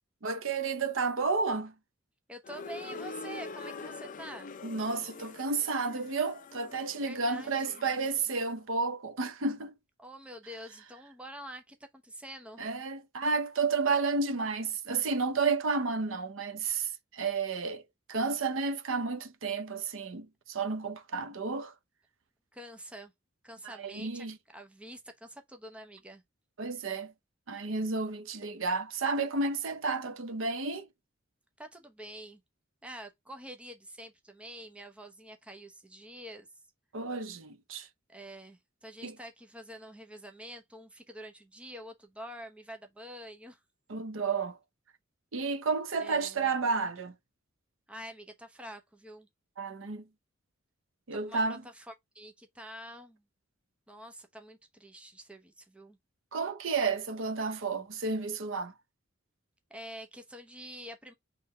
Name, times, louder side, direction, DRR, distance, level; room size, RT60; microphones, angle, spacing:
voice 1, 0.2-1.7 4.6-9.8 12.6-17.8 18.1-21.7 23.6-24.4 26.6-27.1 27.5-30.9 36.9-37.9 39.0-39.2 43.9-44.6 45.3-47.1 49.6-50.1 51.1-51.6 56.3-58.7, right 4 dB, 75° right, 0.7 m, -31 dB
voice 2, 2.3-4.5 7.0-7.8 10.0-12.6 22.5-23.1 23.4-24.3 24.5-26.2 31.6-32.4 32.8-36.5 38.1-43.6 46.0-46.5 47.9-49.3 51.3-53.2 53.9-56.0 59.7-61.1, equal, 5° right, 0.7 m, -47 dB
sound 1, 2.4-8.3, left 4 dB, 40° left, 0.5 m, -44 dB
3.7 x 3.3 x 4.2 m
head